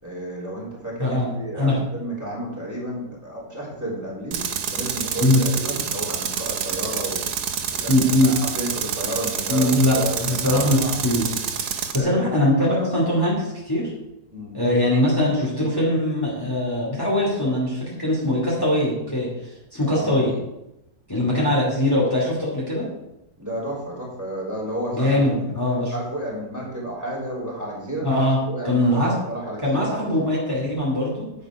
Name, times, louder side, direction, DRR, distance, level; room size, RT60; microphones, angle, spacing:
voice 1, 0.0-4.4 4.7-7.2 7.8-10.9 11.9-12.4 14.3-14.6 19.9-20.2 23.4-25.3 25.6-28.1 28.4-30.3, right 1 dB, 10° right, -6 dB, 3.2 m, -32 dB
voice 2, 1.0-1.8 5.2-5.4 7.9-8.3 9.5-11.2 11.9-13.9 14.5-20.3 21.1-22.9 24.9-25.9 28.0-28.4 28.6-29.1 29.6-31.3, left 1 dB, 15° left, -4 dB, 2.4 m, -21 dB
Tools, 4.3-12.0, right 7 dB, 80° right, 1.5 m, -28 dB
9.5 x 7.8 x 4.8 m, 0.90 s
omnidirectional pair, 1.7 m